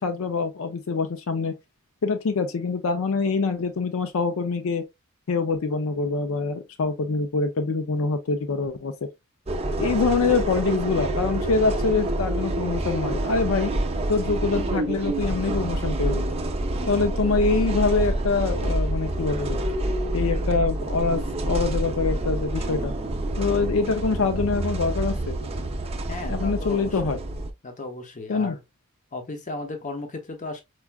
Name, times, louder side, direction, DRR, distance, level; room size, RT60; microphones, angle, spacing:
voice 1, 0.0-1.5 2.0-4.8 5.3-8.9 9.8-13.7 14.1-16.2 16.9-19.6 20.1-22.9 23.4-25.4 26.3-27.2 28.3-28.6, left 4 dB, 75° left, 0.5 m, -25 dB
sound 1, 9.5-27.5, right 1 dB, 30° right, 0.5 m, -27 dB
voice 2, 26.1-27.2 27.6-28.6 29.1-30.6, left 2 dB, 35° left, 0.7 m, -35 dB
4.5 x 2.4 x 2.2 m
head